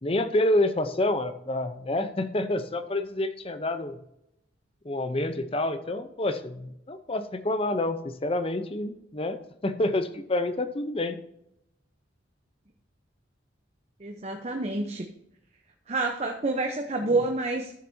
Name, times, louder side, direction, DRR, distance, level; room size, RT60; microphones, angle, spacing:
voice 1, 0.0-4.0 4.8-9.4 9.6-11.2 17.1-17.2, left 1 dB, 30° left, 10 dB, 0.6 m, -28 dB
voice 2, 14.0-15.1 15.9-17.7, right 2 dB, 35° right, 4 dB, 0.7 m, -28 dB
13.0 x 7.3 x 2.7 m, 0.80 s
head